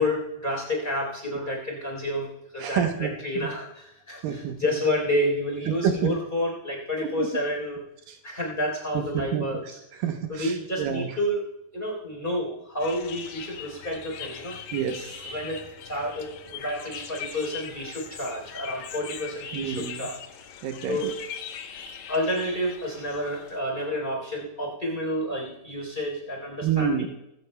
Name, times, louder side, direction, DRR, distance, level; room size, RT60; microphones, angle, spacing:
voice 1, 0.0-2.3 2.5-7.8 8.2-9.8 10.3-11.4 11.7-14.6 15.2-20.2 20.9-21.2 22.1-26.9, left 1 dB, 15° left, -1 dB, 3.5 m, -29 dB
voice 2, 2.6-3.5 4.2-4.6 5.7-6.1 7.0-7.3 8.1-8.2 8.9-9.5 9.9-11.2 14.7-15.2 19.5-20.1 20.6-21.1 26.6-27.1, right 8 dB, 80° right, 5 dB, 2.5 m, -28 dB
sound 1, 12.8-23.6, left 7 dB, 70° left, 1.9 m, -41 dB
21.0 x 15.5 x 2.2 m, 0.84 s
omnidirectional pair, 4.1 m